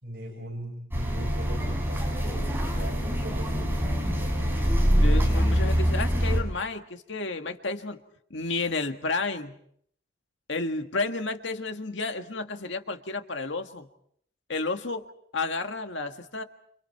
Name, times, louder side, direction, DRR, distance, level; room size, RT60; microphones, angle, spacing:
voice 1, 0.0-3.9, right 1 dB, 50° right, 1 dB, 5.9 m, -39 dB
sound 1, 0.9-6.4, equal, 10° right, 6.2 m, -24 dB
voice 2, 5.0-8.0 8.3-9.6 10.5-13.9 14.5-16.4, left 3 dB, 75° left, 6 dB, 1.8 m, -31 dB
29.5 x 29.5 x 4.7 m, 0.66 s
head